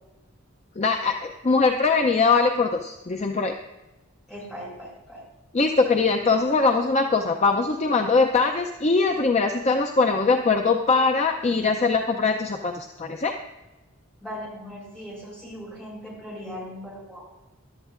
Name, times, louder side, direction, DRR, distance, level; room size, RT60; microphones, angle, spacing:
voice 1, 0.8-3.5 5.5-13.3, left 4 dB, 30° left, 4 dB, 0.5 m, -22 dB
voice 2, 4.3-5.2 14.2-17.3, equal, 5° left, -5 dB, 4.6 m, -39 dB
16.0 x 11.5 x 2.5 m, 1.1 s
head